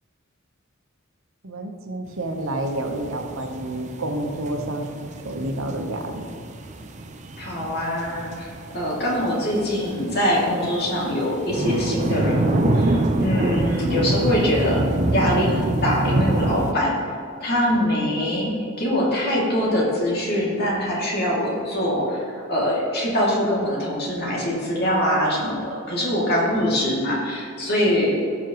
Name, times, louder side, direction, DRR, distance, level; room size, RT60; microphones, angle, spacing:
voice 1, 1.4-4.9 5.2-6.3, right 1 dB, 80° right, 3 dB, 1.2 m, -29 dB
sound 1, 2.5-16.7, right 1 dB, 35° right, 0.6 m, -26 dB
voice 2, 7.4-14.8 15.1-16.9 17.4-18.5 18.8-28.2, equal, 50° left, -4 dB, 2.7 m, -23 dB
17.0 x 6.4 x 3.1 m, 2.4 s
head